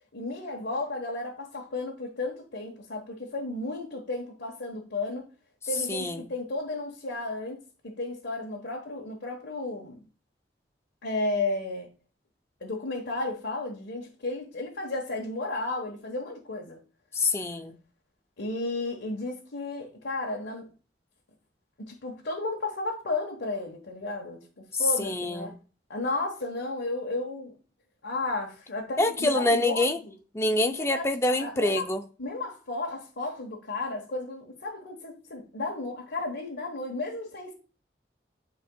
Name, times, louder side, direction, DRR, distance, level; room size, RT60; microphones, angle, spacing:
voice 1, 0.1-5.3 5.7-10.0 11.0-11.9 12.6-16.8 18.4-20.7 21.8-25.6 25.9-27.5 28.0-30.1 30.8-31.9 32.2-37.5, left 2 dB, 90° left, 1.2 m, -33 dB
voice 2, 5.9-6.3 17.1-17.8 24.7-25.6 29.0-30.0 30.3-32.0, left 2 dB, 15° left, 0.5 m, -26 dB
9.7 x 4.4 x 2.3 m
head